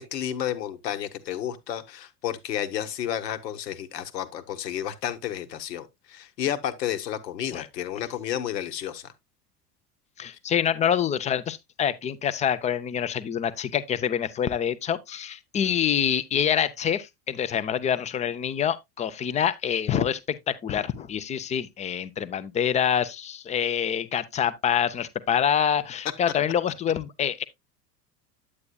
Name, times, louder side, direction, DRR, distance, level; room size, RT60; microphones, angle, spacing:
voice 1, 0.0-9.1, left 10 dB, 75° left, 1.0 m, -31 dB
voice 2, 10.2-27.4, left 9 dB, 15° left, 0.4 m, -26 dB
8.6 x 8.5 x 2.2 m
hypercardioid pair, 80°, 49 cm